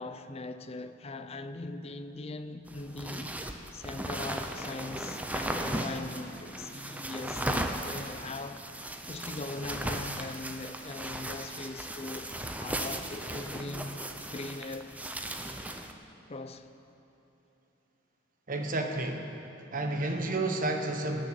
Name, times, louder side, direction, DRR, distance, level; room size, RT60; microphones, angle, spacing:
voice 1, 0.0-14.0 14.3-15.2 16.3-16.7, left 2 dB, 30° left, 0.5 m, -41 dB
sound 1, 2.7-15.9, right 1 dB, 10° right, 0.7 m, -37 dB
voice 2, 18.5-19.3 19.7-21.2, right 2 dB, 45° right, 1.3 m, -31 dB
18.5 x 6.7 x 9.0 m
head